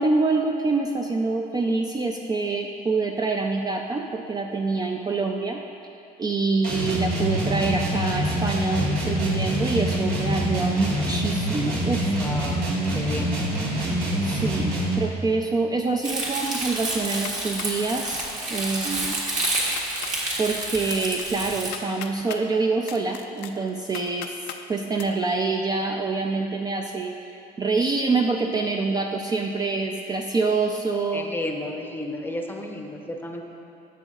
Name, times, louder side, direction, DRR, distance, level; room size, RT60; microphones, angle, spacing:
voice 1, 0.0-5.6 6.2-12.2 14.2-19.2 20.4-24.4 24.7-27.1 27.6-31.3, right 3 dB, 25° right, 2 dB, 0.4 m, -26 dB
sound 1, 6.6-15.1, right 1 dB, 75° right, 1.6 m, -25 dB
voice 2, 12.2-13.5 31.1-33.4, left 1 dB, 10° left, 3 dB, 0.7 m, -33 dB
Crumpling crinkling, 16.0-21.7, right 2 dB, 45° right, 1.7 m, -29 dB
sound 2, 17.0-17.8 18.2-18.6 18.9-19.0 19.3-20.1 20.6-22.4 22.8-24.6 25.0-25.1, left 10 dB, 90° left, 0.5 m, -38 dB
12.0 x 7.1 x 2.4 m, 2.9 s
cardioid pair, 110°, 17 cm